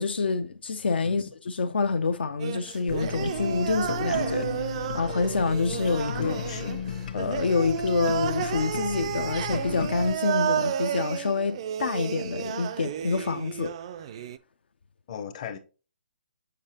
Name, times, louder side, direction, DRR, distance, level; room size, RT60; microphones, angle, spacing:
voice 1, 0.0-4.5 4.7-6.4 7.1-13.7, left 4 dB, 70° left, 0.5 m, -27 dB
sound 1, 2.4-14.4, right 9 dB, 35° right, 0.3 m, -32 dB
sound 2, 2.9-10.1, left 6 dB, 55° left, 1.0 m, -35 dB
voice 2, 6.2-6.8 15.1-15.6, left 8 dB, 40° left, 0.8 m, -38 dB
6.7 x 5.5 x 2.8 m
hypercardioid pair, 155°, 6 cm